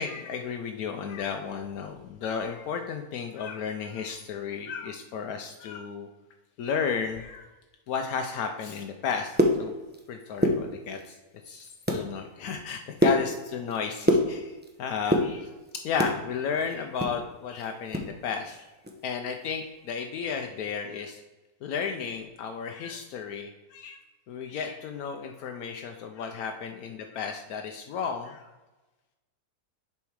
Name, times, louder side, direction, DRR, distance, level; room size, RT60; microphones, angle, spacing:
voice 1, 0.0-6.1 6.6-7.5 7.9-9.8 10.1-11.2 11.4-15.5 15.8-18.7 19.0-21.2 21.6-24.0 24.3-28.5, left 6 dB, 80° left, 4 dB, 1.1 m, -33 dB
sound 1, 9.1-10.1 10.3-11.1 11.5-12.1 12.4-14.7 15.0-16.2 16.6-18.1 18.4-18.5 18.8-19.1 19.4-19.7, equal, 15° right, 0.3 m, -25 dB
7.0 x 4.4 x 4.7 m, 1.1 s
omnidirectional pair, 1.6 m